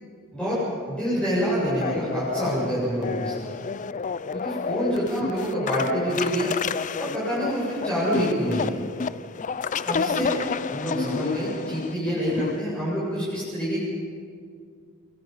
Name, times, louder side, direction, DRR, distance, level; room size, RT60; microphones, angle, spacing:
voice 1, 0.9-3.4 4.3-6.5 7.0-8.8 9.9-10.4 10.7-13.8, equal, 5° left, -10 dB, 7.9 m, -27 dB
sound 1, 1.8-12.6, left 5 dB, 35° left, 0.5 m, -30 dB
27.5 x 22.5 x 5.6 m, 2.1 s
head